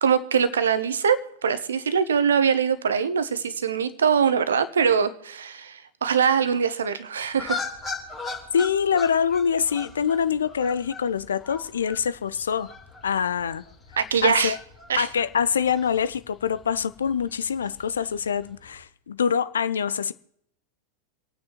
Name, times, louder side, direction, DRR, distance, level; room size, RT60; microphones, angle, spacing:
voice 1, 0.0-7.6 14.0-14.6 14.9-15.1, right 7 dB, 65° right, 1.0 m, -23 dB
Geese Flyby, 7.3-18.8, left 3 dB, 20° left, 3.7 m, -40 dB
voice 2, 8.5-12.7 13.0-13.6 14.2-14.6 15.0-20.1, left 7 dB, 70° left, 0.6 m, -25 dB
27.5 x 9.4 x 3.1 m
figure-of-eight pair, 90°, 0 cm